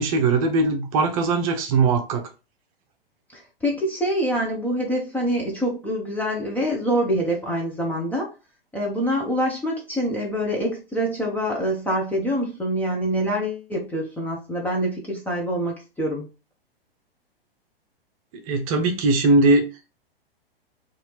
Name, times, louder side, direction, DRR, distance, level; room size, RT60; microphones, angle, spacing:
voice 1, 0.0-2.2 18.5-19.7, right 3 dB, 35° right, 0.8 m, -20 dB
voice 2, 3.3-8.3 8.7-16.3, equal, 5° left, 0.6 m, -25 dB
4.2 x 2.6 x 3.1 m
figure-of-eight pair, 105°, 30 cm